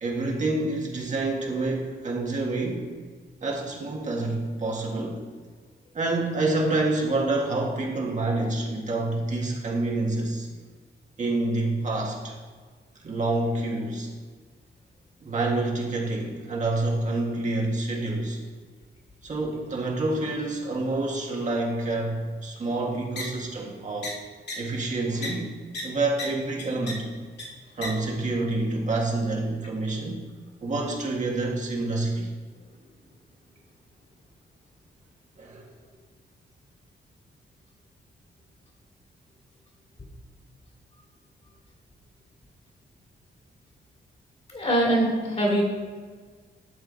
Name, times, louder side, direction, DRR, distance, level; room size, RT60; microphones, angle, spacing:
voice 1, 0.0-2.9 3.4-5.2 5.9-10.5 11.2-12.4 13.0-14.1 15.2-18.4 19.2-24.1 24.6-25.5 25.8-27.1 27.8-30.3 30.6-32.3 35.4-35.7, right 2 dB, 40° right, -2 dB, 1.7 m, -27 dB
sound 1, 23.2-23.3 24.0-24.1 24.5-24.6 25.2-25.3 25.7-25.8 26.2-26.3 26.6-26.9 27.4-27.5 27.8-27.9, left 3 dB, 70° left, 2.2 m, -32 dB
voice 2, 44.5-45.6, right 1 dB, 35° left, -2 dB, 2.7 m, -23 dB
12.0 x 6.9 x 4.1 m, 1.5 s
wide cardioid pair, 140°, 18 cm